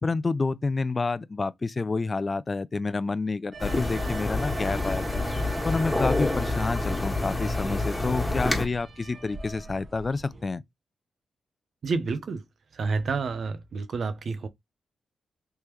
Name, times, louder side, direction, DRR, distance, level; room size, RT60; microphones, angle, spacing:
voice 1, 0.0-5.2 5.6-10.6, left 3 dB, 40° left, 0.4 m, -29 dB
sound 1, 3.5-10.5, right 3 dB, 50° right, 1.2 m, -43 dB
sound 2, 3.6-8.7, left 2 dB, 15° left, 1.7 m, -28 dB
voice 2, 11.8-12.4 12.7-14.5, right 4 dB, 65° right, 0.6 m, -29 dB
3.4 x 3.1 x 3.0 m
cardioid pair, 60°, 0 cm